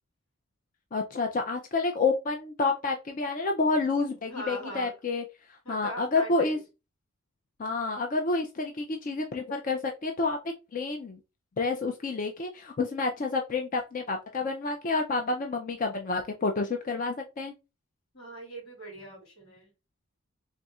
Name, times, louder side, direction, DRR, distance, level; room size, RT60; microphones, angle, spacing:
voice 1, 0.9-5.2 5.7-6.6 7.6-10.4 10.7-11.2 11.6-17.5, left 3 dB, 40° left, 3 dB, 0.4 m, -29 dB
voice 2, 4.3-5.0 5.6-6.5 18.1-19.7, equal, 80° left, -2 dB, 2.5 m, -40 dB
3.5 x 2.4 x 4.1 m, 0.28 s
head